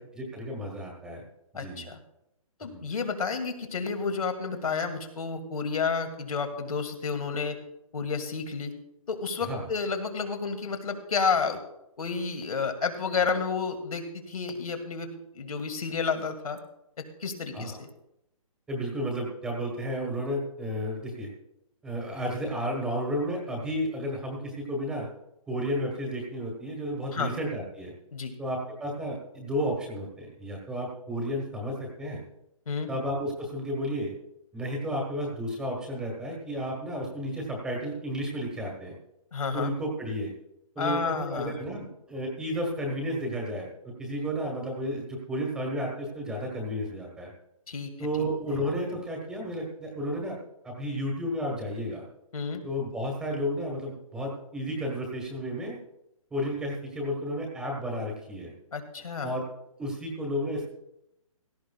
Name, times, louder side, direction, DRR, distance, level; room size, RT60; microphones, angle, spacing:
voice 1, 0.1-1.2 1.5-1.9 2.7-2.8 9.4-9.7 17.5-17.8 18.7-21.3 21.8-25.1 25.5-27.9 28.4-32.2 32.9-34.1 34.5-38.9 39.5-40.3 40.7-47.3 48.0-50.4 50.6-52.0 52.6-55.8 56.3-58.5 59.2-59.4 59.8-60.7, equal, 5° right, 0 dB, 1.2 m, -32 dB
voice 2, 1.5-2.0 2.6-7.6 7.9-8.7 9.1-11.6 12.0-16.6 17.2-17.9 27.1-27.3 28.1-28.3 32.7-32.9 39.3-39.7 40.8-41.6 47.7-48.3 52.3-52.6 58.7-59.4, left 5 dB, 85° left, 5 dB, 2.2 m, -31 dB
16.5 x 14.0 x 2.3 m, 0.84 s
hypercardioid pair, 170°, 18 cm